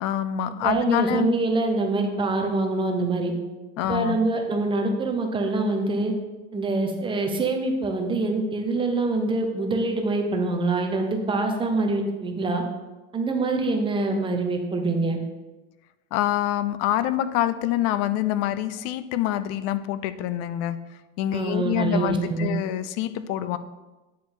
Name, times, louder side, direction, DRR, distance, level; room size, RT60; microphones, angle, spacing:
voice 1, 0.0-1.4 3.8-4.2 16.1-20.8 21.2-23.6, left 12 dB, 50° left, 14 dB, 0.5 m, -26 dB
voice 2, 0.6-3.3 3.9-6.1 6.5-12.6 13.1-15.2 21.3-22.5, right 2 dB, 15° right, 3 dB, 0.6 m, -25 dB
9.3 x 4.9 x 3.9 m, 1.1 s
cardioid pair, 165°, 32 cm